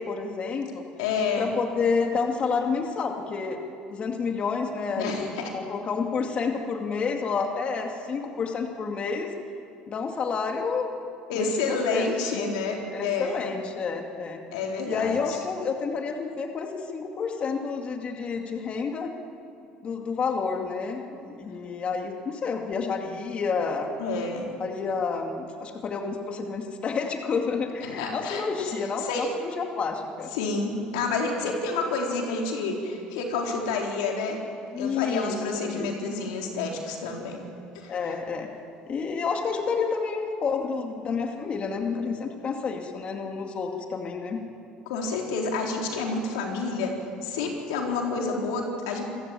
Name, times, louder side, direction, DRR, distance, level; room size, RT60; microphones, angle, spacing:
voice 1, 0.0-0.8 1.4-3.6 3.9-9.3 9.9-10.9 11.3-12.5 12.9-14.4 14.8-19.1 19.8-23.9 24.6-30.3 31.4-31.5 34.7-35.9 37.9-38.5 38.9-44.4, left 5 dB, 40° left, 3 dB, 2.4 m, -29 dB
voice 2, 1.0-1.5 5.0-5.4 11.3-13.4 14.5-15.4 24.0-24.5 27.8-28.7 29.0-29.3 30.3-34.4 34.8-37.4 37.7-37.9 44.9-46.9 47.2-49.0, left 4 dB, 90° left, 1 dB, 3.9 m, -29 dB
27.0 x 15.5 x 8.8 m, 2.6 s
supercardioid pair, 100°, 3 cm